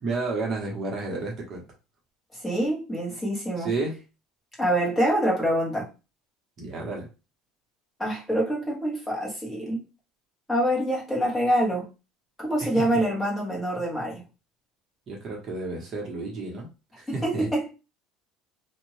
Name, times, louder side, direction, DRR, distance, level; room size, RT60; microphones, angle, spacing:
voice 1, 0.0-1.7 3.6-4.0 6.6-7.1 12.6-12.9 15.1-16.7 16.9-17.5, right 3 dB, 35° right, -1 dB, 1.1 m, -31 dB
voice 2, 2.4-3.7 4.6-5.9 8.0-9.8 10.5-11.9 12.4-14.2 17.1-17.7, right 1 dB, 5° left, -4 dB, 1.4 m, -25 dB
2.7 x 2.5 x 3.2 m, 0.29 s
cardioid pair, 155°, 0 cm